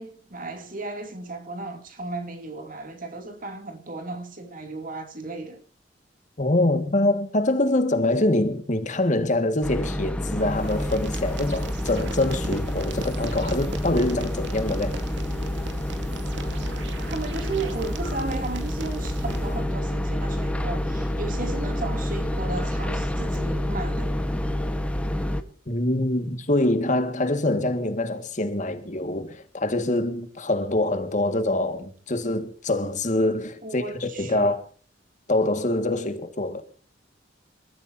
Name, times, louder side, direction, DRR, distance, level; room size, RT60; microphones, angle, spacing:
voice 1, 0.0-5.6 17.0-24.2 33.6-34.6, right 3 dB, 50° right, 2.8 m, -35 dB
voice 2, 6.4-15.0 25.7-34.6 35.3-36.6, left 1 dB, 40° left, 1.9 m, -24 dB
sound 1, 9.6-25.4, left 1 dB, 5° left, 1.3 m, -29 dB
sound 2, 10.3-19.7, right 1 dB, 75° right, 2.4 m, -35 dB
28.0 x 14.0 x 2.8 m
head